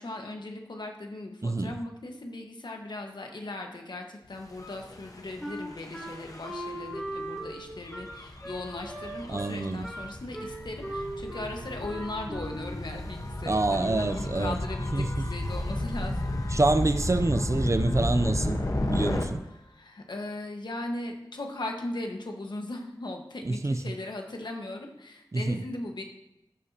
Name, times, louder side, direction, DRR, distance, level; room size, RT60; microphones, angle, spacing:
voice 1, 0.0-16.4 19.7-26.0, left 2 dB, 70° left, 1.5 m, -38 dB
voice 2, 1.4-1.8 9.3-9.9 13.5-14.6 14.9-15.3 16.5-18.6 18.9-19.4 23.4-24.0 25.3-25.6, right 2 dB, 40° right, 0.5 m, -27 dB
Gull seagull / Waves surf / Siren, 4.5-19.2, left 1 dB, 45° left, 1.2 m, -33 dB
Wind instrument woodwind instrument, 5.4-12.9, right 1 dB, 5° left, 3.4 m, -39 dB
14.0 x 7.1 x 2.9 m
wide cardioid pair, 65°, 8 cm